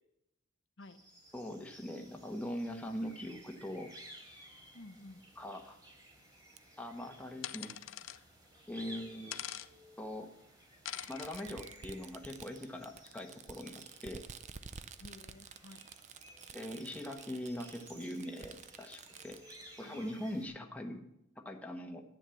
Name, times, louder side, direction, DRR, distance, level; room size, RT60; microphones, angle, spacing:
sound 1, 0.8-20.5, right 1 dB, 20° right, 3.4 m, -57 dB
voice 1, 1.3-3.9 5.4-5.8 6.8-7.8 8.7-9.5 10.0-10.3 11.1-14.2 16.5-19.4 19.8-21.0 21.4-22.0, left 1 dB, 5° left, 2 dB, 1.3 m, -42 dB
voice 2, 4.7-5.2 15.0-15.8 19.8-21.0, left 2 dB, 65° left, 8 dB, 0.9 m, -54 dB
Fireworks, 6.6-6.7 7.8-7.9 9.1-9.2 10.9-19.6, right 6 dB, 35° right, 0.5 m, -51 dB
sound 2, 7.4-8.2 9.3-9.7 10.8-11.4, left 12 dB, 80° left, 0.5 m, -43 dB
11.0 x 9.3 x 7.1 m, 0.81 s
head